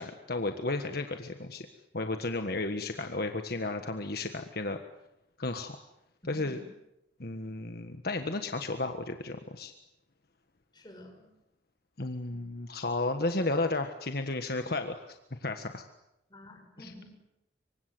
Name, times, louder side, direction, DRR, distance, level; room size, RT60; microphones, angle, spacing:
voice 1, 0.0-1.7 1.9-4.8 5.4-5.8 6.3-6.6 7.2-9.7 12.0-15.1 15.4-15.8 16.8-16.9, left 2 dB, 60° left, 6 dB, 1.6 m, -33 dB
voice 2, 6.2-6.6 10.7-11.3 12.3-12.4 16.3-17.3, left 1 dB, 25° left, 2 dB, 6.7 m, -50 dB
26.0 x 24.5 x 7.9 m, 0.85 s
head